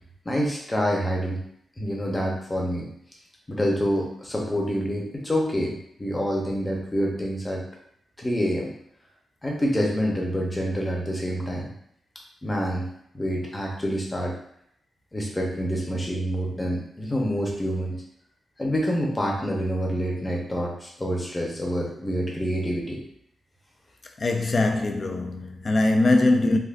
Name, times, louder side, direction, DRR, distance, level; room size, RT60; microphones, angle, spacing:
voice 1, 0.2-1.4 1.8-2.9 3.5-7.6 8.2-8.7 9.4-11.7 12.4-14.4 15.1-18.0 18.6-23.0, equal, 15° left, 0.7 m, -27 dB
voice 2, 24.2-26.6, left 2 dB, 35° left, 0.4 m, -21 dB
3.4 x 2.4 x 2.5 m
wide cardioid pair, 125°, 0 cm